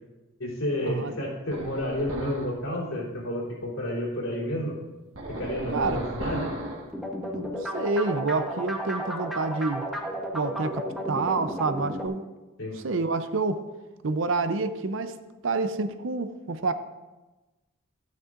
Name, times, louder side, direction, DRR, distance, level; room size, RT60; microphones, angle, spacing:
voice 1, 0.4-4.8 5.3-6.5 12.6-12.8, left 1 dB, 80° left, -5 dB, 3.4 m, -30 dB
sound 1, 1.5-2.6 5.2-6.9, right 1 dB, 85° right, 1.5 m, -35 dB
sound 2, 6.9-12.1, equal, ahead, 0.9 m, -33 dB
voice 2, 7.3-9.9 10.3-12.2 12.8-13.6 14.0-15.2 15.4-16.7, right 3 dB, 65° right, 11 dB, 0.6 m, -28 dB
13.5 x 9.2 x 2.5 m, 1.1 s
head